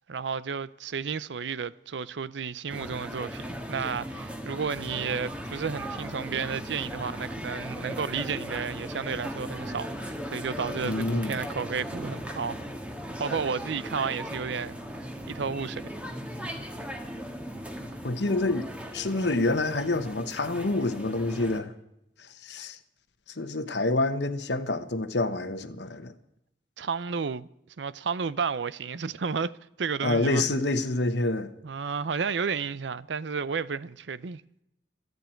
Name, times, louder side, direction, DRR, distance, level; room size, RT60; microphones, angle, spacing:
voice 1, 0.1-12.6 13.2-15.8 26.8-27.5 27.8-29.5 29.8-30.5 31.6-34.4, right 5 dB, 75° right, 0.6 m, -32 dB
sound 1, 2.7-21.6, equal, 5° right, 1.6 m, -37 dB
voice 2, 10.8-11.4 18.0-18.7 18.9-21.7 22.2-22.8 23.4-26.1 30.0-31.5, left 2 dB, 70° left, 1.2 m, -27 dB
27.5 x 9.4 x 4.5 m
head